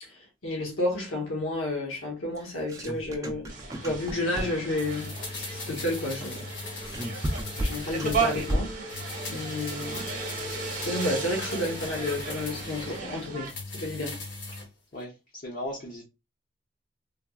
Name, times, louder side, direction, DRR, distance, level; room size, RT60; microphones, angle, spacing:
voice 1, 0.0-6.4 7.6-8.8 9.3-10.1 10.8-14.2, left 1 dB, 85° left, 1.0 m, -31 dB
sound 1, 2.4-4.8 6.5-8.9, equal, 15° right, 0.4 m, -33 dB
sound 2, 3.5-13.5, right 4 dB, 40° right, 0.7 m, -35 dB
sound 3, 4.8-8.6 8.9-13.0 13.4-14.7 15.0-15.1, left 3 dB, 60° left, 0.9 m, -39 dB
voice 2, 14.9-16.0, left 1 dB, 40° left, 0.5 m, -37 dB
3.3 x 2.0 x 2.3 m
head